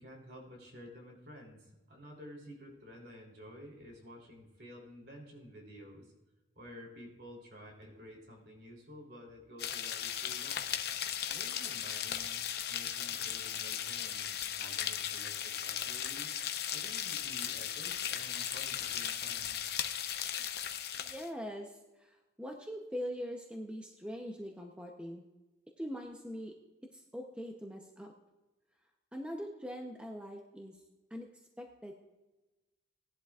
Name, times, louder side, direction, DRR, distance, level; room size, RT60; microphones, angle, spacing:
voice 1, 0.0-6.1 6.6-10.8 11.3-12.4 12.7-16.3 16.7-19.6, equal, 60° right, -1 dB, 3.4 m, -51 dB
sound 1, 9.6-21.3, left 10 dB, 55° left, 0.8 m, -37 dB
voice 2, 21.0-25.2 25.8-26.5 26.9-28.1 29.1-30.8 31.1-31.3 31.6-31.9, equal, 5° right, 1 dB, 0.8 m, -42 dB
18.5 x 11.0 x 2.4 m, 1.1 s
head